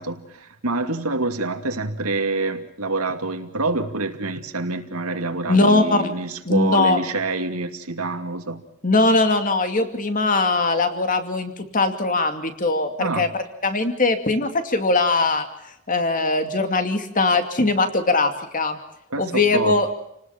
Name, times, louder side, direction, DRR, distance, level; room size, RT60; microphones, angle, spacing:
voice 1, 0.0-8.6 13.0-13.3 19.1-19.8, right 2 dB, 90° right, 6 dB, 2.4 m, -26 dB
voice 2, 5.5-6.0 6.4-7.0 8.8-13.3 13.6-15.4 15.9-18.8 19.2-19.9, left 3 dB, 40° left, 7 dB, 2.6 m, -20 dB
29.0 x 19.0 x 5.9 m, 0.81 s
head